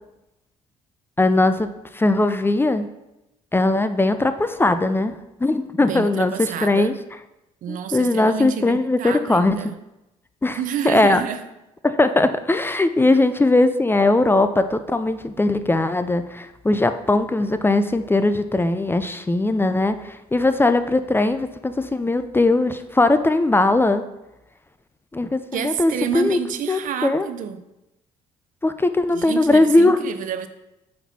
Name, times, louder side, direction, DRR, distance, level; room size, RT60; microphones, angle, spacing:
voice 1, 1.2-2.9 3.5-6.9 7.7-9.6 10.4-10.6 10.8-11.2 11.8-24.0 25.1-26.4 26.7-27.3 28.6-30.0, left 2 dB, 15° left, 10 dB, 0.5 m, -19 dB
voice 2, 5.8-7.0 7.6-9.8 10.5-11.4 13.1-13.2 25.5-27.6 29.1-30.5, right 8 dB, 60° right, 10 dB, 0.6 m, -29 dB
8.0 x 4.4 x 4.2 m, 0.93 s
supercardioid pair, 65°, 15 cm